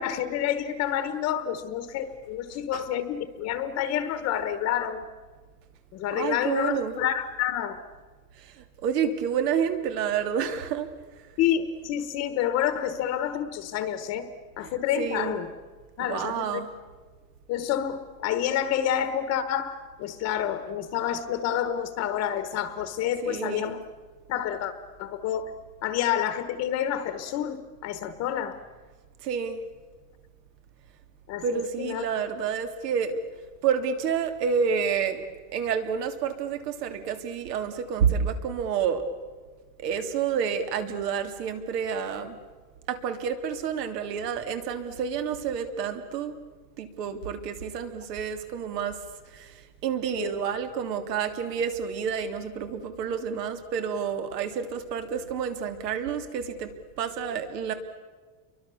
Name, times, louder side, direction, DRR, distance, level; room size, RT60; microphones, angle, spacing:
voice 1, 0.0-5.0 5.9-7.8 11.4-14.2 14.6-15.5 16.0-16.6 17.5-23.8 24.3-24.7 25.0-25.5 25.8-27.6 27.8-28.6 31.3-32.2 50.2-50.4, left 10 dB, 30° left, 11 dB, 1.1 m, -28 dB
voice 2, 6.1-6.9 8.4-10.9 14.6-15.4 16.1-16.7 23.2-23.8 29.2-29.6 31.4-33.2 33.6-35.2 35.5-39.0 39.8-42.4 42.9-46.3 46.8-49.0 49.3-56.7 57.0-57.7, right 7 dB, 80° right, 7 dB, 3.2 m, -29 dB
30.0 x 24.0 x 7.0 m, 1.4 s
supercardioid pair, 175°, 48 cm